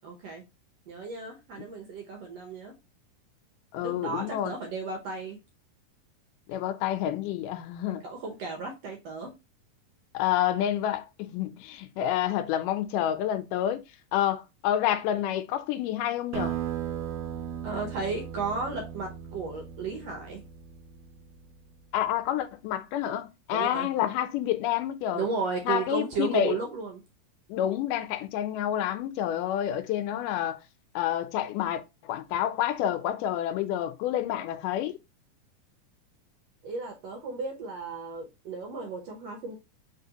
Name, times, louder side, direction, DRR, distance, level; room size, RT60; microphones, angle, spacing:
voice 1, 0.0-0.4 0.9-2.7 3.8-5.4 8.0-9.3 17.6-20.4 23.5-23.9 25.1-27.0 36.6-39.6, right 4 dB, 65° right, 1.7 m, -34 dB
voice 2, 3.7-4.5 6.5-8.0 10.1-13.8 14.1-16.6 21.9-25.3 25.7-26.6 27.5-30.6 31.0-35.0, left 11 dB, 85° left, 2.1 m, -28 dB
sound 1, 16.3-21.5, right 9 dB, 85° right, 2.1 m, -37 dB
4.1 x 4.1 x 2.8 m
omnidirectional pair, 3.7 m